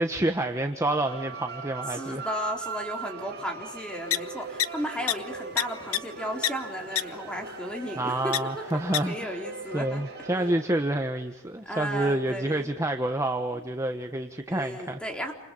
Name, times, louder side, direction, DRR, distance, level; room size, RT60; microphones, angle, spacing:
voice 1, 0.0-2.3 8.0-9.4 9.7-15.0, right 1 dB, 15° right, 5 dB, 1.3 m, -28 dB
sound 1, 0.9-10.5, right 4 dB, 50° right, 7.1 m, -40 dB
voice 2, 1.9-8.7 9.1-10.0 11.6-12.7 13.5-13.6 14.5-15.3, equal, 5° left, 2 dB, 4.3 m, -35 dB
Prairie Dogs from Bad Lands-South Dakota, 4.1-4.2 4.6-4.7 5.1-5.2 5.6-5.7 5.9-6.0 6.4-6.5 7.0-7.1 8.3-8.4 8.9-9.0, left 11 dB, 80° left, 1.1 m, -23 dB
29.0 x 28.5 x 5.5 m, 0.95 s
head